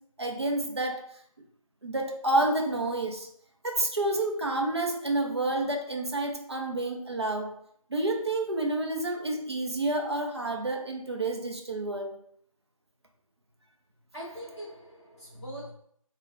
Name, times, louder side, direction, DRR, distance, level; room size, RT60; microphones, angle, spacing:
voice 1, 0.2-1.1 1.8-3.3 3.6-7.5 7.9-12.1, right 2 dB, 50° right, 0.6 m, -29 dB
voice 2, 14.1-15.7, right 1 dB, 5° left, 1.2 m, -42 dB
3.3 x 2.2 x 2.5 m
figure-of-eight pair, 165°, 18 cm